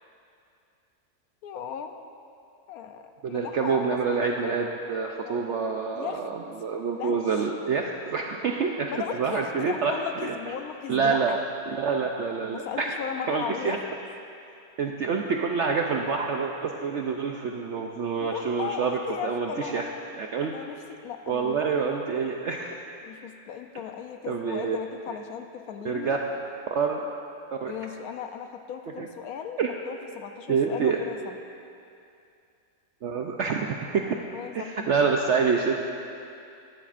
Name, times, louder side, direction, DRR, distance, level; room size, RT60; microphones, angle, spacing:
voice 1, 1.4-2.0 2.7-4.5 5.2-5.6 5.9-6.3 6.9-7.5 8.9-11.4 12.5-13.8 18.2-20.0 20.4-21.6 23.0-26.2 27.7-29.6 29.9-31.4 34.0-35.0, left 8 dB, 70° left, 7 dB, 1.0 m, -37 dB
voice 2, 3.2-8.9 9.2-9.9 10.2-10.3 10.9-11.3 11.7-12.9 13.3-13.8 14.8-19.9 20.2-20.5 21.3-22.9 24.3-24.8 25.8-26.2 26.7-27.0 27.5-27.7 29.0-29.1 29.6-29.7 30.5-31.0 33.0-34.2 34.5-35.7, right 5 dB, 70° right, 2 dB, 0.7 m, -27 dB
15.5 x 12.0 x 2.5 m, 2.5 s
omnidirectional pair, 1.8 m